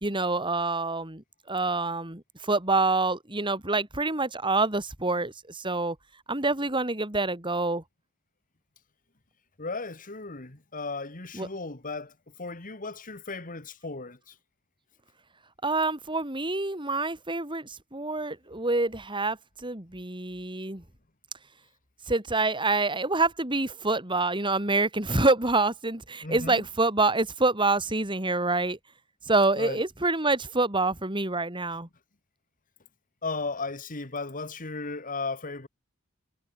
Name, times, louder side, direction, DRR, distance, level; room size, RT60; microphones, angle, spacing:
voice 1, 0.0-6.0 6.3-7.8 11.3-11.5 15.6-20.8 22.1-28.8 29.3-31.9, right 3 dB, 25° right, 3.5 m, -27 dB
voice 2, 9.6-12.1 12.4-14.3 26.2-26.6 29.6-29.8 33.2-35.7, left 3 dB, 40° left, 2.2 m, -35 dB
head